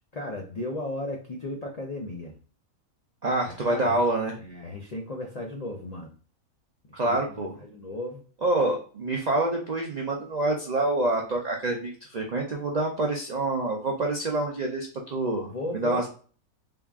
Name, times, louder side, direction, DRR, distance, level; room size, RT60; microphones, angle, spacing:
voice 1, 0.1-2.3 3.5-4.0 4.4-6.1 6.9-8.2 15.5-16.1, left 1 dB, 80° left, 1 dB, 0.3 m, -35 dB
voice 2, 3.2-4.3 6.9-7.5 8.4-16.1, right 2 dB, 70° right, 0 dB, 0.4 m, -27 dB
3.7 x 2.4 x 3.4 m, 0.41 s
omnidirectional pair, 1.5 m